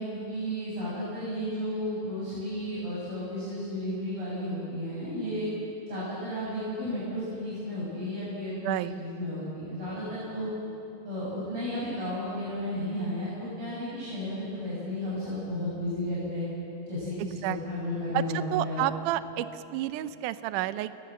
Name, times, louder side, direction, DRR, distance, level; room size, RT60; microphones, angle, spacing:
voice 1, 0.0-5.5 5.9-10.5 11.0-16.4 16.9-18.8, left 1 dB, 35° right, -9 dB, 7.1 m, -33 dB
voice 2, 8.6-8.9 17.2-17.6 18.1-20.9, right 14 dB, 90° right, 13 dB, 1.8 m, -30 dB
29.0 x 20.5 x 7.5 m, 2.8 s
omnidirectional pair, 4.5 m